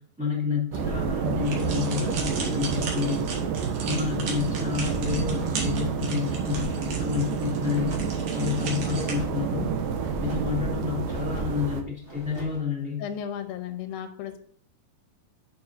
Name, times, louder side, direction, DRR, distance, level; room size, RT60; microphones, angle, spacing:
voice 1, 0.2-3.3 3.8-8.0 8.3-9.7 10.2-13.0, left 6 dB, ahead, -3 dB, 2.2 m, -29 dB
sound 1, 0.7-11.8, right 6 dB, 75° right, 2.4 m, -29 dB
sound 2, 1.4-9.1, right 4 dB, 55° right, 2.7 m, -37 dB
sound 3, 5.2-5.9 6.4-7.0 7.6-8.3 8.9-9.5 9.9-10.6 11.0-11.6 12.0-12.7, equal, 30° right, 1.2 m, -43 dB
voice 2, 13.0-14.4, left 9 dB, 85° left, 7 dB, 2.6 m, -34 dB
9.8 x 6.5 x 2.7 m, 0.62 s
omnidirectional pair, 4.2 m